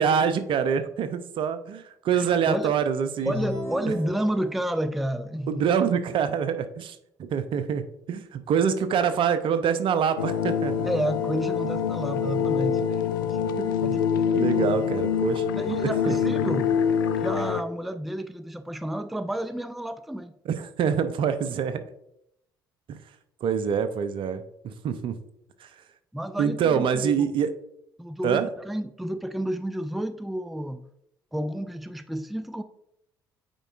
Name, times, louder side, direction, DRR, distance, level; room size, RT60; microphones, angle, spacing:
voice 1, 0.0-3.3 3.8-3.9 5.5-7.0 7.3-10.9 13.6-13.7 14.3-15.4 16.1-16.2 20.4-21.8 22.9-23.0 23.4-25.2 25.6-25.7 26.4-27.5 28.2-28.5, right 7 dB, 50° right, 11 dB, 0.6 m, -25 dB
voice 2, 2.1-2.7 3.3-5.6 10.8-13.5 13.8-14.8 15.5-16.7 17.2-20.3 26.1-27.3 28.0-30.8 31.3-32.6, right 1 dB, ahead, 11 dB, 0.3 m, -31 dB
sound 1, 3.2-4.8, left 2 dB, 45° left, 2.2 m, -34 dB
sound 2, 10.2-17.6, left 7 dB, 80° left, 0.4 m, -25 dB
8.9 x 4.5 x 2.5 m, 0.78 s
figure-of-eight pair, 50°, 11 cm